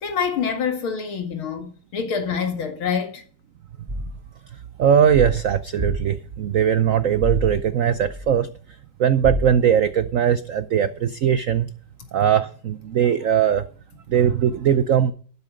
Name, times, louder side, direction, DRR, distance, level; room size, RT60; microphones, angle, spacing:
voice 1, 0.0-3.2, left 6 dB, 75° left, 2.8 m, -26 dB
sound 1, 3.9-4.2 5.1-6.2 7.2-8.4 9.2-9.7, equal, 15° right, 1.1 m, -29 dB
voice 2, 4.8-8.5 9.0-11.7 12.1-13.6 14.1-15.1, right 9 dB, 90° right, 0.7 m, -20 dB
12.5 x 11.5 x 5.1 m
omnidirectional pair, 2.3 m